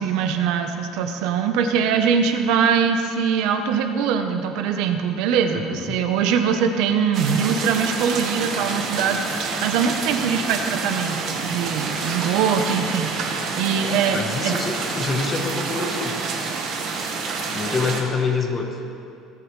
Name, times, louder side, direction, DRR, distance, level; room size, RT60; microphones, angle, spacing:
voice 1, 0.0-14.6, right 7 dB, 70° right, 6 dB, 0.8 m, -22 dB
voice 2, 5.5-6.1 14.1-16.2 17.5-18.8, left 4 dB, 25° left, 2 dB, 1.1 m, -26 dB
sound 1, 7.1-18.0, right 4 dB, 45° right, 1.4 m, -28 dB
17.5 x 8.4 x 3.2 m, 2.5 s
cardioid pair, 160°, 0 cm